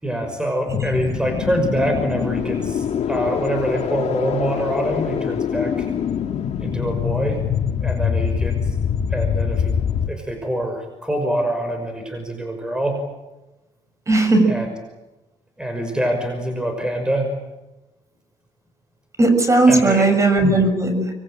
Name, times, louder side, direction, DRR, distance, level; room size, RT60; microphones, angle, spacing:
voice 1, 0.0-5.9 6.6-7.4 7.8-8.8 9.1-9.7 10.1-13.0 14.4-14.7 15.6-17.3 19.7-20.1, right 1 dB, 5° right, 5 dB, 5.7 m, -25 dB
sound 1, 0.7-10.1, left 7 dB, 55° left, 2.0 m, -24 dB
voice 2, 14.1-14.5 19.2-21.1, right 2 dB, 25° right, 7 dB, 6.7 m, -16 dB
25.5 x 22.5 x 8.9 m, 1.1 s
cardioid pair, 95°, 13 cm